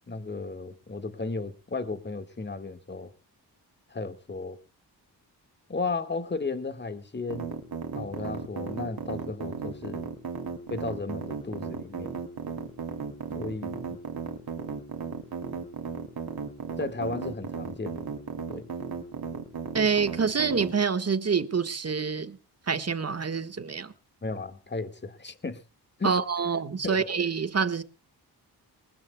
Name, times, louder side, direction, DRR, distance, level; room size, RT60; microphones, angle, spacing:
voice 1, 0.1-3.1 3.9-4.6 5.7-7.6 7.9-10.1 10.7-12.2 13.4-14.0 16.8-18.0 18.5-18.7 24.2-25.6 26.0-26.2 26.8-27.0, left 3 dB, 25° left, 1.8 m, -34 dB
sound 1, 7.3-20.7, right 6 dB, 60° right, 2.8 m, -35 dB
voice 2, 19.7-22.4 22.7-23.9 26.0-27.8, right 5 dB, 35° right, 1.5 m, -26 dB
20.5 x 20.0 x 2.3 m
cardioid pair, 70°, 41 cm